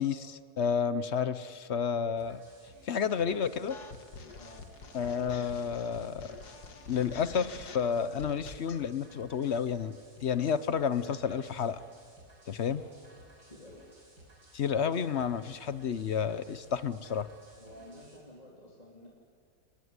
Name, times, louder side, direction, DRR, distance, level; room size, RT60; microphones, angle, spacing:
voice 1, 0.0-2.4 2.8-3.8 4.9-6.3 6.9-11.8 12.5-12.8 14.5-17.3, left 7 dB, 50° left, 15 dB, 0.9 m, -31 dB
sound 1, 2.2-18.2, right 1 dB, 85° right, 5.9 m, -58 dB
sound 2, 3.7-8.8, left 5 dB, 80° left, 2.1 m, -47 dB
voice 2, 4.3-4.7 12.6-13.9 17.6-19.1, left 1 dB, 25° left, -3 dB, 3.5 m, -52 dB
30.0 x 19.5 x 9.7 m, 2.2 s
omnidirectional pair, 1.7 m